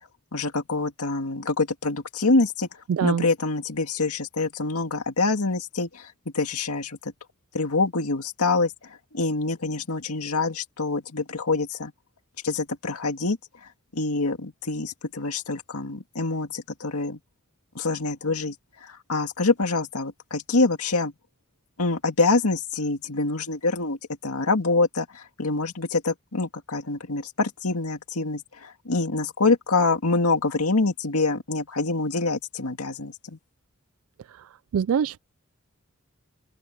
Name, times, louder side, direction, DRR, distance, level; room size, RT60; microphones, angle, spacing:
voice 1, 0.3-2.7 3.0-7.0 7.5-8.7 9.1-11.9 12.4-13.4 13.9-17.2 17.8-18.5 18.8-21.1 21.8-24.0 24.2-33.4, left 3 dB, 85° left, 2.0 m, -25 dB
voice 2, 2.9-3.3 34.3-34.4 34.7-35.2, right 7 dB, 70° right, 0.3 m, -24 dB
open air
head